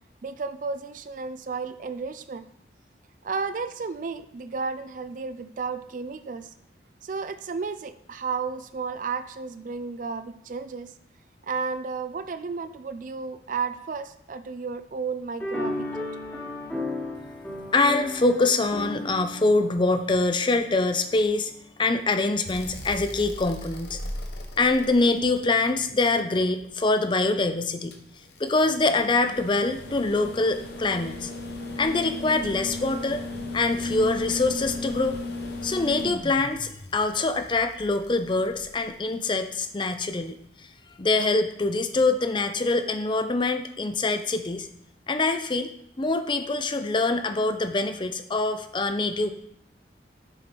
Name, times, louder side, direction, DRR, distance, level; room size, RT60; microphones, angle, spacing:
voice 1, 0.2-2.4 3.2-6.5 7.0-10.9 11.4-16.0, right 5 dB, 45° right, 12 dB, 0.4 m, -33 dB
sound 1, 15.4-21.0, left 2 dB, 10° left, 1.2 m, -34 dB
voice 2, 17.7-21.5 21.8-24.0 24.6-28.0 28.4-31.3 31.8-33.2 33.5-35.2 35.6-40.4 41.0-44.7 45.1-45.7 46.0-49.3, left 3 dB, 25° left, 8 dB, 0.5 m, -24 dB
sound 2, 22.5-26.6 27.9-39.1 40.7-40.8, left 2 dB, 65° left, 1.0 m, -37 dB
7.1 x 4.4 x 5.2 m, 0.70 s
head